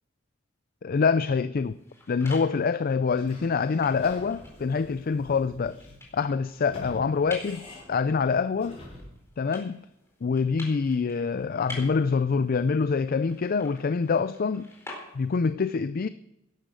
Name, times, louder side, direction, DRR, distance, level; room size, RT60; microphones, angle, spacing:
voice 1, 0.8-1.7 2.1-5.8 6.1-8.8 9.4-9.8 10.2-14.7 15.1-16.1, left 5 dB, 45° left, 0.4 m, -25 dB
sound 1, 1.6-15.5, left 2 dB, 15° left, 4.2 m, -48 dB
Sliding door / Squeak, 3.1-9.2, left 1 dB, 30° left, 5.2 m, -47 dB
13.0 x 11.5 x 6.3 m
head